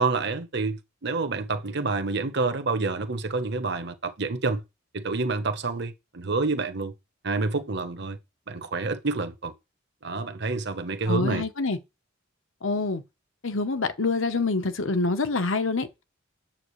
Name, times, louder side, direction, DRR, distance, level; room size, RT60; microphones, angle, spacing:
voice 1, 0.0-4.6 4.9-6.9 7.2-8.2 8.5-9.5 10.0-11.5, right 3 dB, 55° right, 1.1 m, -28 dB
voice 2, 11.1-11.8 12.6-13.0 13.4-16.0, left 3 dB, 70° left, 1.0 m, -26 dB
8.7 x 7.5 x 3.2 m
head